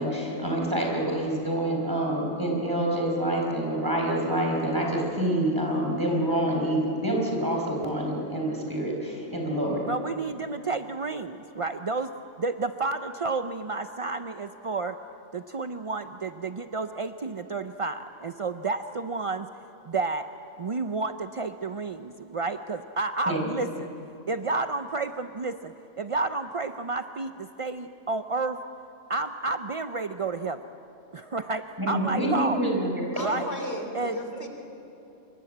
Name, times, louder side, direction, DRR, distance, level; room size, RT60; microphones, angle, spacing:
voice 1, 0.0-9.8 23.2-23.5 31.8-33.2, right 1 dB, 15° right, -1 dB, 5.1 m, -27 dB
voice 2, 9.9-12.1 12.4-15.0 15.3-19.5 19.8-20.3 20.6-23.9 24.3-28.6 29.1-30.6 31.1-32.6 33.2-33.5 33.9-34.2, right 3 dB, 50° right, 8 dB, 0.3 m, -31 dB
voice 3, 33.1-34.5, left 1 dB, 50° left, 3 dB, 3.3 m, -36 dB
27.0 x 24.0 x 7.9 m, 2.9 s
omnidirectional pair, 1.4 m